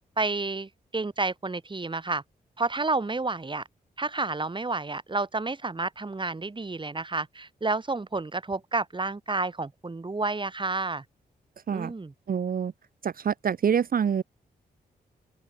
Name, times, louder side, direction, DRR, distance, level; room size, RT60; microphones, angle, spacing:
voice 1, 0.2-2.2 2.6-3.6 4.0-11.0 11.7-12.1, right 3 dB, 30° right, 3.9 m, -30 dB
voice 2, 12.3-12.7 13.0-14.2, right 7 dB, 60° right, 1.2 m, -26 dB
open air
cardioid pair, 65°, 17 cm